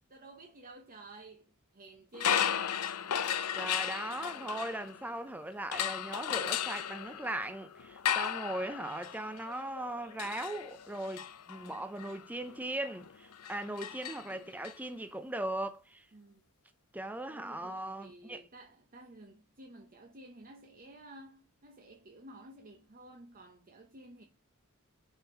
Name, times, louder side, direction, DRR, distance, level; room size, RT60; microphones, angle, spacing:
voice 1, 0.1-2.5 16.1-16.4 17.2-24.2, right 2 dB, 40° right, 0.8 m, -52 dB
sound 1, 2.1-5.2 5.7-14.7, left 9 dB, 90° left, 0.6 m, -35 dB
voice 2, 3.5-16.1 16.9-18.4, right 1 dB, 5° right, 0.5 m, -39 dB
5.7 x 5.1 x 4.3 m
head